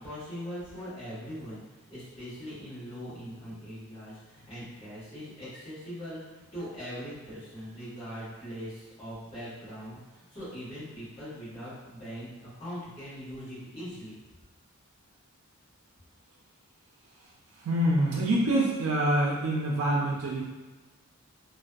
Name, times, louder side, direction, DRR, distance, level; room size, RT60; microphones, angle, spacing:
voice 1, 0.0-14.2, equal, 25° left, -12 dB, 1.2 m, -41 dB
voice 2, 17.2-20.4, right 1 dB, 75° right, -4 dB, 0.4 m, -26 dB
2.5 x 2.2 x 2.2 m, 1.2 s
head